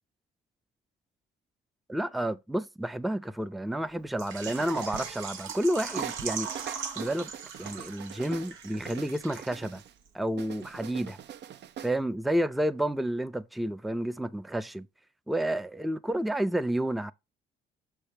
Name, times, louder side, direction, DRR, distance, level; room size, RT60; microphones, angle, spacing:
voice 1, 1.9-6.5 7.0-7.3 7.6-9.8 10.1-11.2 11.8-14.9 15.3-17.1, right 1 dB, ahead, 0.4 m, -30 dB
Water / Liquid, 4.2-9.8 10.1-10.2 10.6-10.7, right 6 dB, 85° right, 1.1 m, -39 dB
sound 1, 4.4-5.6 6.0-9.9 10.4-12.0, right 9 dB, 60° right, 0.5 m, -43 dB
6.4 x 3.4 x 5.7 m
cardioid pair, 90°, 20 cm